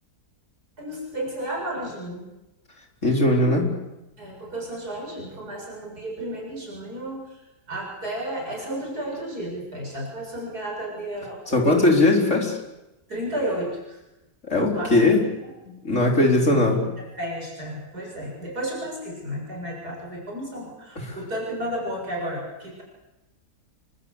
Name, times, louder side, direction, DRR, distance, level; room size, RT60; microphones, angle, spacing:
voice 1, 0.8-2.2 4.2-7.2 7.7-11.8 13.1-14.0 14.7-14.9 15.2-15.3 16.3-22.8, right 1 dB, 65° right, -1 dB, 7.9 m, -32 dB
voice 2, 3.0-3.7 11.5-12.6 14.5-15.2 15.7-16.8 21.1-21.2, left 2 dB, 45° left, 1 dB, 5.1 m, -19 dB
29.0 x 23.0 x 8.4 m, 0.98 s
omnidirectional pair, 1.8 m